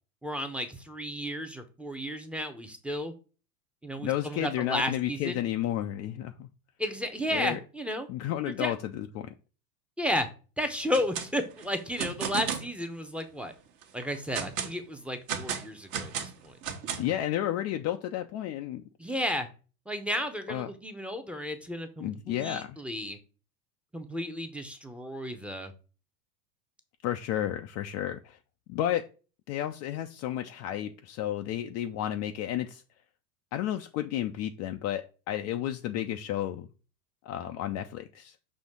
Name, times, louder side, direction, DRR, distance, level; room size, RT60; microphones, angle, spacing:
voice 1, 0.2-3.1 3.8-5.4 6.8-8.1 8.5-8.7 10.0-10.3 10.6-13.5 13.9-16.5 19.0-19.5 19.9-23.2 23.9-25.7, equal, 5° right, 0.7 m, -33 dB
voice 2, 4.0-6.5 7.3-7.6 8.1-9.3 17.0-18.8 20.5-20.7 22.0-22.8 27.0-28.4 28.7-29.0 29.5-32.8 33.5-36.7 37.2-38.4, left 12 dB, 35° left, 0.4 m, -32 dB
sound 1, 10.8-11.3 11.6-12.7 13.2-13.3 13.8-14.8 15.3-17.2, right 7 dB, 45° right, 1.2 m, -34 dB
6.3 x 2.8 x 5.3 m
hypercardioid pair, 105°, 46 cm